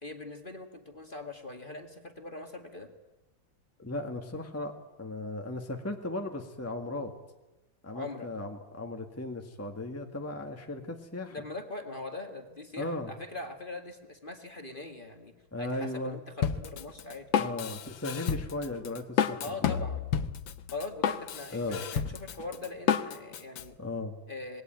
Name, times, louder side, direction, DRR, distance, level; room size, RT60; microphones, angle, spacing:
voice 1, 0.0-2.9 7.9-8.3 11.3-17.3 19.4-20.0 20.7-23.8 24.3-24.6, left 3 dB, 25° left, 6 dB, 2.2 m, -41 dB
voice 2, 3.8-4.7 5.0-7.1 7.8-11.4 12.8-13.1 15.5-16.2 17.4-19.8 21.5-21.8 23.8-24.1, left 2 dB, 10° left, 4 dB, 1.8 m, -36 dB
Drum kit, 16.4-23.6, left 8 dB, 80° left, 1.8 m, -30 dB
26.5 x 20.5 x 9.1 m, 1.1 s
omnidirectional pair, 2.1 m